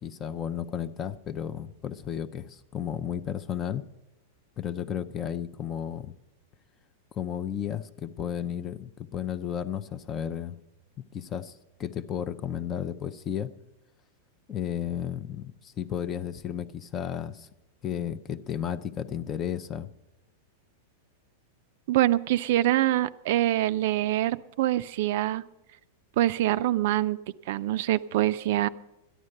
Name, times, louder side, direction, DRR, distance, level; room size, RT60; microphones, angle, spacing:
voice 1, 0.0-3.8 4.6-6.1 7.1-10.6 11.1-13.5 14.5-17.5 17.8-19.9, left 9 dB, 20° left, 12 dB, 0.5 m, -33 dB
voice 2, 21.9-25.4 26.2-27.2 27.5-28.7, right 14 dB, 55° right, 14 dB, 0.4 m, -25 dB
13.0 x 11.0 x 6.5 m, 0.95 s
supercardioid pair, 160°, 0 cm